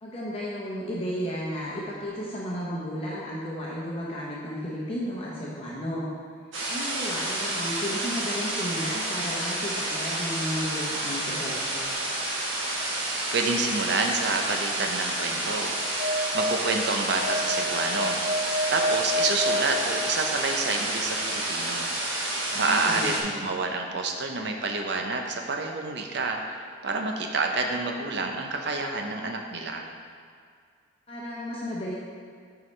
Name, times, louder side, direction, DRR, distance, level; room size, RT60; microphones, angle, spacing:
voice 1, 0.0-6.1 6.7-11.9 22.5-23.2 31.1-32.0, equal, 30° left, -6 dB, 0.9 m, -33 dB
sound 1, 6.5-23.2, right 1 dB, 85° right, 1.4 m, -30 dB
voice 2, 13.3-15.7 16.3-18.2 18.7-21.9 22.5-29.9, right 3 dB, 60° right, 3 dB, 0.7 m, -28 dB
sound 2, 15.7-20.6, equal, 35° right, 1.2 m, -30 dB
9.3 x 4.8 x 3.3 m, 2.1 s
head